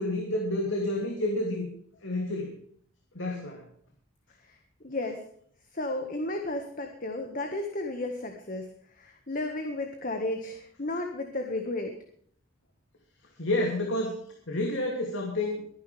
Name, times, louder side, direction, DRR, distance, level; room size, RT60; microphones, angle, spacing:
voice 1, 0.0-1.7 2.0-2.5 3.1-3.6 13.4-14.2 14.5-15.6, left 1 dB, 65° left, 1 dB, 2.7 m, -29 dB
voice 2, 4.8-5.2 5.7-8.7 9.0-11.9, left 2 dB, 40° left, 4 dB, 1.6 m, -33 dB
23.5 x 10.0 x 3.4 m, 0.62 s
head